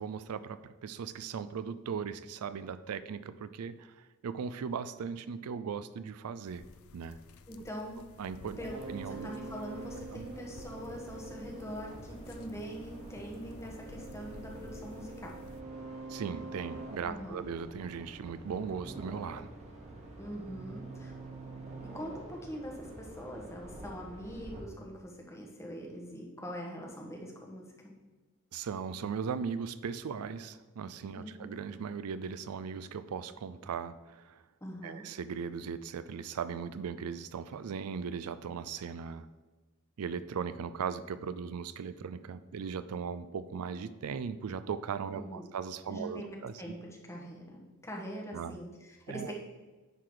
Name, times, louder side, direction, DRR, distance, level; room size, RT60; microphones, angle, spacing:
voice 1, 0.0-6.6 6.9-7.2 8.2-8.6 8.9-9.3 10.1-10.3 16.1-19.5 28.5-34.4 34.8-39.3 40.0-46.8 48.3-48.6 49.1-49.3, right 6 dB, 80° right, 14 dB, 0.4 m, -38 dB
sound 1, 6.4-15.6, left 3 dB, 70° left, 0.5 m, -53 dB
voice 2, 7.5-8.0 8.6-15.3 17.0-17.4 20.2-21.2 21.8-27.9 31.1-31.5 34.6-35.0 45.1-45.5 45.9-49.3, equal, 15° left, -1 dB, 1.3 m, -43 dB
sound 2, 8.4-24.6, right 2 dB, 30° right, 1.4 m, -46 dB
10.0 x 4.0 x 4.8 m, 1.2 s
head